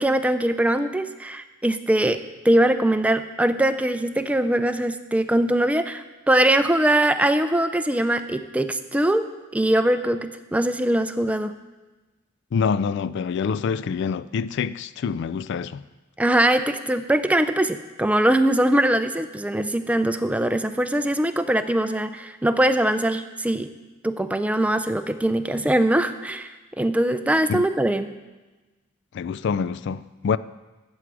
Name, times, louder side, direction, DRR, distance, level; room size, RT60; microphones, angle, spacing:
voice 1, 0.0-9.2 9.5-11.5 16.2-23.7 24.0-26.5 26.8-28.1, right 1 dB, 5° right, 0.4 m, -22 dB
voice 2, 12.5-15.8 27.5-27.6 29.1-30.4, left 6 dB, 60° left, 0.3 m, -26 dB
13.5 x 8.2 x 4.8 m
head